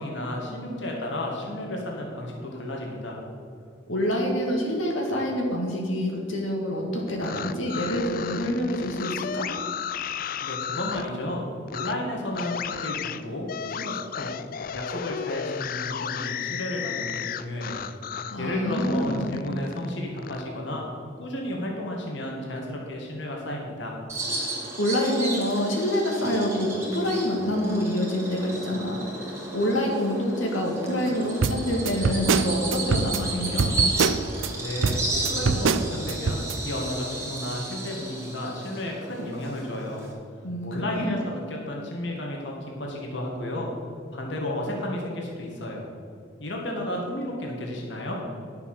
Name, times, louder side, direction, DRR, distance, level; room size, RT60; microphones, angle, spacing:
voice 1, 0.0-3.2 10.4-11.4 11.7-14.3 14.7-17.9 18.4-20.8 21.2-24.0 34.6-40.0 40.6-41.2 41.5-43.7 44.1-45.9 46.4-48.2, left 1 dB, 65° left, -1 dB, 1.8 m, -32 dB
voice 2, 3.9-9.5 18.2-19.4 24.8-29.0 29.5-33.7 40.4-41.2, equal, 90° left, 0 dB, 1.9 m, -26 dB
sound 1, 7.1-11.1 11.7-11.9 12.3-18.4 18.7-20.4, left 8 dB, 45° left, 0.3 m, -33 dB
Bird vocalization bird call bird song, 24.1-40.1, right 2 dB, 15° right, 1.9 m, -33 dB
sound 2, 31.4-34.5 34.8-36.5, right 4 dB, 80° right, 0.5 m, -24 dB
11.0 x 6.8 x 6.6 m, 2.3 s
head